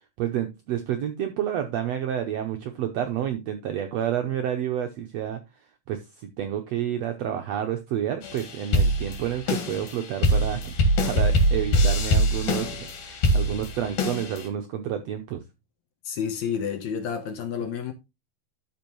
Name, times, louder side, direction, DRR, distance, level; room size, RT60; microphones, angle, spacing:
voice 1, 0.2-5.4 5.9-10.7 11.0-15.4, right 10 dB, 80° right, 1.5 m, -29 dB
sound 1, 8.2-14.5, equal, 85° left, 3.6 m, -23 dB
voice 2, 16.1-17.9, left 7 dB, 65° left, 2.0 m, -30 dB
12.5 x 5.2 x 3.1 m
omnidirectional pair, 3.9 m